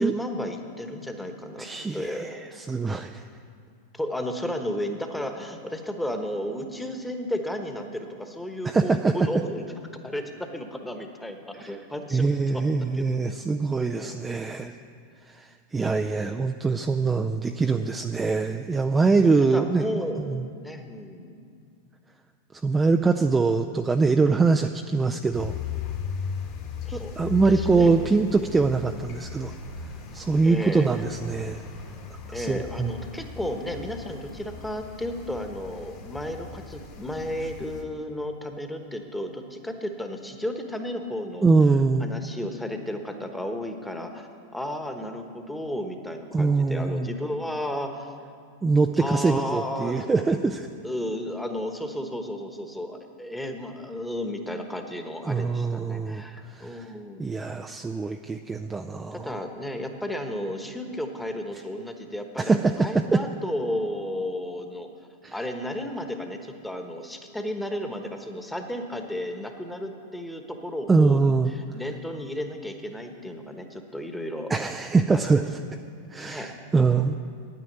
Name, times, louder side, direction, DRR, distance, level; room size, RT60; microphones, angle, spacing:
voice 1, 0.0-1.7 1.9-2.3 3.9-9.6 10.0-12.6 12.9-13.4 14.0-14.4 19.0-19.2 19.5-21.5 26.8-27.1 27.4-27.9 30.4-30.9 32.3-41.5 42.0-44.3 44.5-48.1 49.0-50.1 50.8-57.2 59.1-64.9 65.3-74.5 75.1-75.2 76.2-77.0, left 1 dB, 5° left, 5 dB, 1.2 m, -33 dB
voice 2, 1.6-3.2 8.6-9.1 11.6-11.8 12.1-14.7 15.3-20.0 20.3-20.4 22.6-25.5 26.9-29.5 30.1-31.6 32.3-32.9 41.4-42.1 46.3-47.1 48.6-50.7 55.3-56.2 56.6-56.8 57.2-59.3 62.4-63.2 65.2-65.4 70.9-71.5 74.5-75.5 76.1-77.1, right 4 dB, 15° right, 5 dB, 0.4 m, -23 dB
sound 1, 25.3-37.8, left 7 dB, 50° left, 2.1 m, -37 dB
Bass guitar, 28.1-32.5, right 3 dB, 40° right, 1.1 m, -49 dB
9.4 x 9.4 x 7.9 m, 2.3 s
hypercardioid pair, 105°, 0 cm